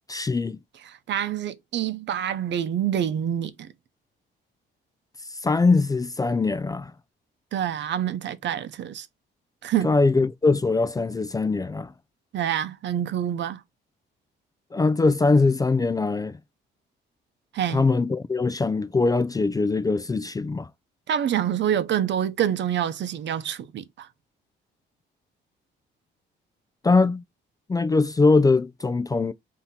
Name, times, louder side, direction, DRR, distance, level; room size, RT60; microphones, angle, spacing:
voice 1, 0.1-0.6 5.4-6.9 9.8-11.9 14.7-16.4 17.7-20.7 26.8-27.2 27.7-29.3, left 3 dB, 20° left, 0.4 m, -22 dB
voice 2, 0.9-3.7 7.5-9.1 9.6-9.9 12.3-13.6 17.5-17.8 21.1-24.1, right 10 dB, 65° right, 0.8 m, -26 dB
3.7 x 2.9 x 4.2 m
cardioid pair, 90°, 20 cm